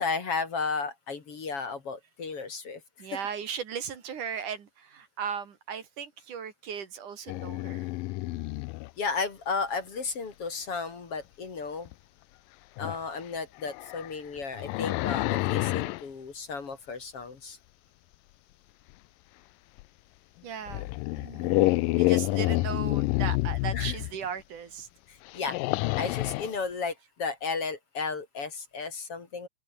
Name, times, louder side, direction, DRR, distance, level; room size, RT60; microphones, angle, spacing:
voice 1, 0.0-3.2 9.0-11.9 12.8-17.6 21.4-21.8 23.7-24.0 25.1-25.6 26.0-29.5, left 4 dB, 45° left, 3.4 m, -34 dB
voice 2, 3.0-8.0 20.4-24.9, right 7 dB, 65° right, 4.0 m, -37 dB
sound 1, 7.3-8.9 11.9-12.0 12.8-13.0 13.6-16.0 19.8-19.9 20.7-24.1 25.3-26.6, left 21 dB, 90° left, 2.3 m, -28 dB
open air
omnidirectional pair, 3.9 m